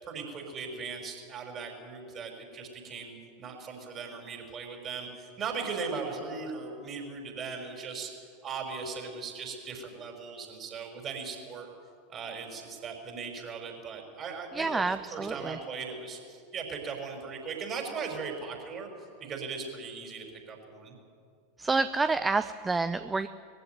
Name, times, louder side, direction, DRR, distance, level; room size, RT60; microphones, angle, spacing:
voice 1, 0.0-8.1 8.4-11.7 12.1-14.8 15.1-18.9 19.2-20.9, right 5 dB, 35° right, 3 dB, 5.6 m, -38 dB
voice 2, 14.5-15.6 21.6-23.3, right 3 dB, 15° right, 12 dB, 0.6 m, -28 dB
21.0 x 15.0 x 9.5 m, 2.4 s
figure-of-eight pair, 85°, 0 cm